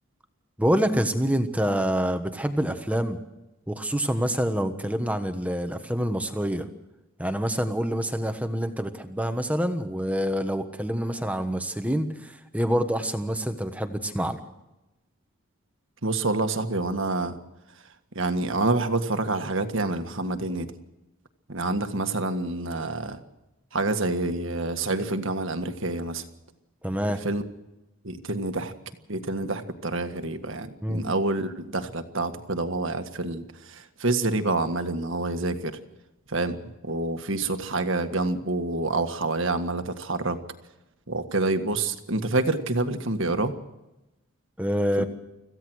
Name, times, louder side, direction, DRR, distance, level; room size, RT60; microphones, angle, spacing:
voice 1, 0.6-3.2 3.7-6.7 7.2-14.4 26.8-27.2 30.8-31.0 44.6-45.0, equal, 5° right, 7 dB, 1.3 m, -26 dB
voice 2, 16.0-17.4 18.1-20.7 21.5-23.2 23.7-26.2 27.2-27.4 28.0-28.7 29.1-35.8 36.3-36.6 36.8-40.4 41.1-43.5 45.0-45.1, right 2 dB, 60° right, 8 dB, 1.7 m, -27 dB
26.0 x 15.5 x 6.4 m, 0.98 s
head